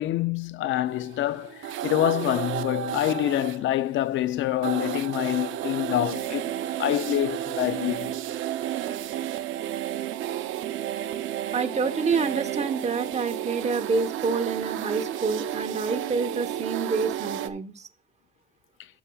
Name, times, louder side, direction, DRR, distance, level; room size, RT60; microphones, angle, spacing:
voice 1, 0.0-6.5 6.8-8.1, left 13 dB, 75° left, 0.4 m, -26 dB
sound 1, 0.9-17.5, right 11 dB, 80° right, 0.6 m, -32 dB
voice 2, 11.5-17.9, right 5 dB, 35° right, 1.0 m, -27 dB
11.0 x 7.0 x 2.3 m
cardioid pair, 90°, 20 cm